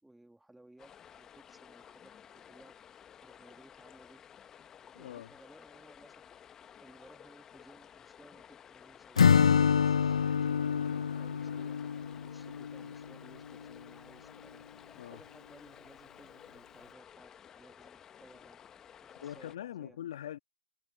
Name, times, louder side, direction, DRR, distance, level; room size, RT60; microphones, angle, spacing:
voice 1, 0.0-2.7 3.2-4.2 4.9-6.3 6.8-11.8 12.2-17.3 17.6-18.6 19.0-20.0, right 1 dB, 5° right, 2.8 m, -59 dB
sound 1, 0.8-19.6, left 8 dB, 15° left, 1.2 m, -55 dB
voice 2, 4.9-5.3 15.0-15.2 19.2-20.4, left 11 dB, 55° left, 1.7 m, -42 dB
Acoustic guitar / Strum, 9.2-13.1, left 7 dB, 75° left, 0.3 m, -27 dB
hypercardioid pair, 135°, 3 cm